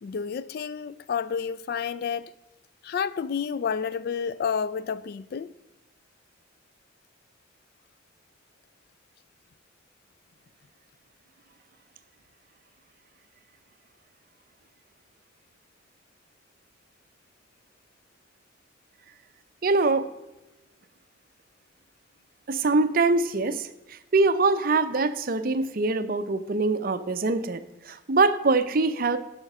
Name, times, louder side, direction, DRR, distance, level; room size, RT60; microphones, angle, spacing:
voice 1, 0.0-2.3 2.8-5.5, left 6 dB, 50° left, 0.3 m, -30 dB
voice 2, 19.6-20.1 22.5-29.2, right 3 dB, 45° right, 0.6 m, -24 dB
11.0 x 5.8 x 5.4 m
head